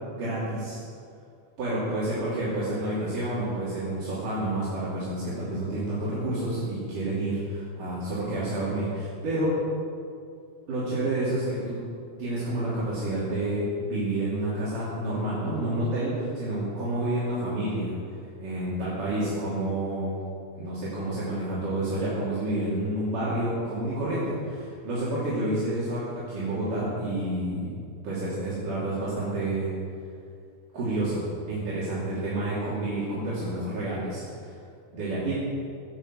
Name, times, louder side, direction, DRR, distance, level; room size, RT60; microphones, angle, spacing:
voice 1, 0.1-0.8 1.6-9.6 10.7-11.8 12.2-18.0 18.4-20.2 20.6-27.7 28.0-29.7 30.7-34.5 34.9-35.3, right 1 dB, 75° right, -10 dB, 4.8 m, -29 dB
17.0 x 8.2 x 8.2 m, 2.3 s
omnidirectional pair, 3.7 m